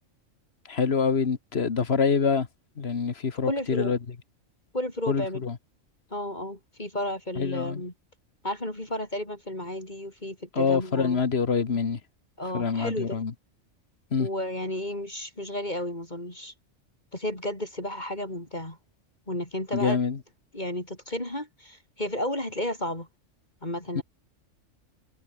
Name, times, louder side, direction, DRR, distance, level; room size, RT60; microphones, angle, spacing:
voice 1, 0.7-2.5 2.8-4.0 5.1-5.6 7.4-7.8 10.5-12.0 12.5-13.3 14.1-14.3 19.7-20.2 23.9-24.0, left 5 dB, 55° left, 1.7 m, -25 dB
voice 2, 3.4-3.9 4.7-5.4 6.1-7.9 8.4-11.2 12.4-13.2 14.2-16.5 17.1-18.8 19.3-20.0 20.5-23.1 23.6-24.0, left 1 dB, 35° left, 4.9 m, -32 dB
omnidirectional pair, 1.3 m